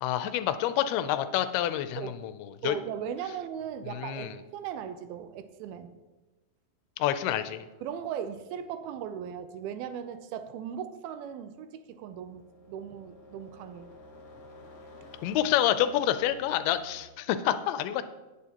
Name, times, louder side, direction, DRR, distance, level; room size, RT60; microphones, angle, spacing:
voice 1, 0.0-2.8 3.9-4.4 7.0-7.7 15.2-18.0, left 12 dB, 85° left, 11 dB, 2.5 m, -28 dB
voice 2, 2.6-6.0 7.8-13.9, right 8 dB, 80° right, 10 dB, 2.4 m, -38 dB
sound 1, 11.9-17.0, left 1 dB, 55° left, 2.0 m, -52 dB
18.0 x 7.0 x 2.9 m, 1.2 s
omnidirectional pair, 4.4 m